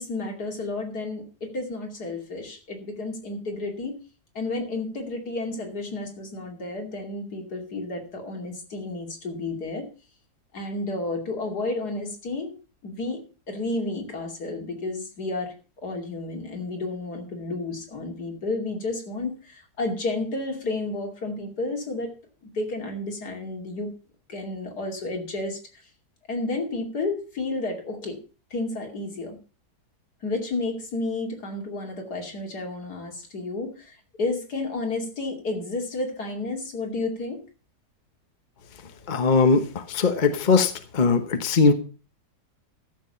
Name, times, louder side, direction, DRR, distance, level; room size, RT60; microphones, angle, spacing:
voice 1, 0.0-4.0 4.3-9.9 10.5-12.5 12.8-15.5 15.8-22.2 22.5-23.9 24.3-25.8 26.3-28.2 28.5-29.4 30.2-37.5, left 2 dB, 75° left, 2 dB, 3.2 m, -31 dB
voice 2, 39.1-39.6 39.9-41.7, left 4 dB, 30° left, 8 dB, 1.1 m, -20 dB
13.5 x 7.2 x 5.6 m, 0.36 s
omnidirectional pair, 1.7 m